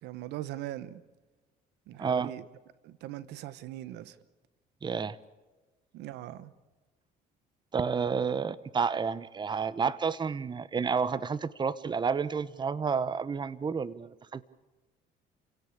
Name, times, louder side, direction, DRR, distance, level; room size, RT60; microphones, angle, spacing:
voice 1, 0.0-1.0 1.9-2.4 2.8-4.2 5.9-6.5, right 14 dB, 85° right, 1.2 m, -40 dB
voice 2, 2.0-2.3 4.8-5.2 7.7-14.4, right 5 dB, 25° right, 1.0 m, -30 dB
29.0 x 17.5 x 8.5 m
cardioid pair, 110°, 17 cm